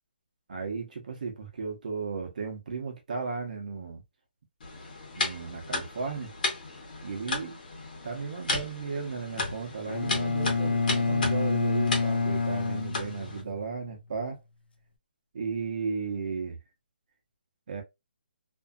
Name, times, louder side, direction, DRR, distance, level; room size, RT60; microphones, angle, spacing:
voice 1, 0.5-4.0 5.1-6.3 7.0-7.6 8.0-14.4 15.3-16.6 17.7-17.8, right 5 dB, 50° right, 0.8 m, -35 dB
sound 1, 4.6-13.4, left 3 dB, 55° left, 1.1 m, -35 dB
Bowed string instrument, 9.9-13.7, left 4 dB, 80° left, 0.5 m, -28 dB
2.6 x 2.4 x 2.3 m
hypercardioid pair, 170°, 5 cm